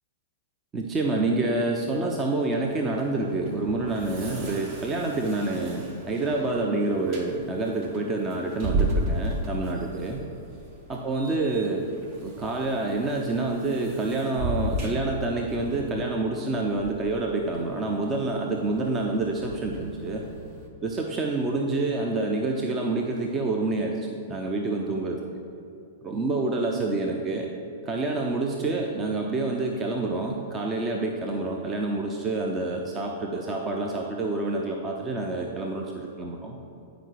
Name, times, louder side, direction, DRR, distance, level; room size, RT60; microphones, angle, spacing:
voice 1, 0.7-10.2 10.9-11.9 12.2-20.2 20.8-25.2 26.0-27.5 27.9-36.6, right 2 dB, 25° right, 1 dB, 0.7 m, -27 dB
sound 1, 2.4-20.7, right 1 dB, 45° right, 1.3 m, -35 dB
9.6 x 5.1 x 4.7 m, 2.7 s
hypercardioid pair, 115°, 0 cm